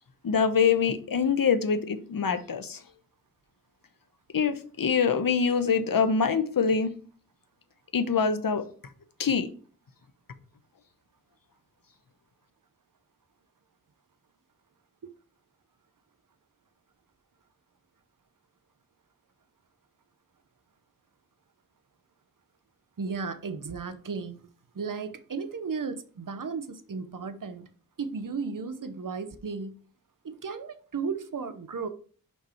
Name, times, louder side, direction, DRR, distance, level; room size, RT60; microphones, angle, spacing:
voice 1, 0.2-2.8 4.3-6.9 7.9-8.6 9.2-9.5, left 6 dB, 70° left, 0.9 m, -24 dB
voice 2, 23.0-24.5 24.7-27.7 28.0-29.7 30.2-31.9, right 5 dB, 60° right, 0.9 m, -34 dB
5.7 x 4.7 x 5.8 m
wide cardioid pair, 55°, 36 cm